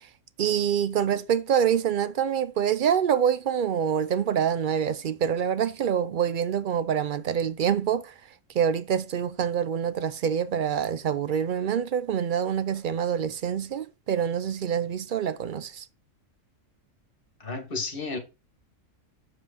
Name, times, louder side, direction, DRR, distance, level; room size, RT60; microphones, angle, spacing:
voice 1, 0.4-8.1 8.5-15.8, right 8 dB, 60° right, 0.5 m, -26 dB
voice 2, 17.4-18.2, left 3 dB, 45° left, 2.0 m, -32 dB
7.5 x 5.0 x 5.2 m
omnidirectional pair, 1.3 m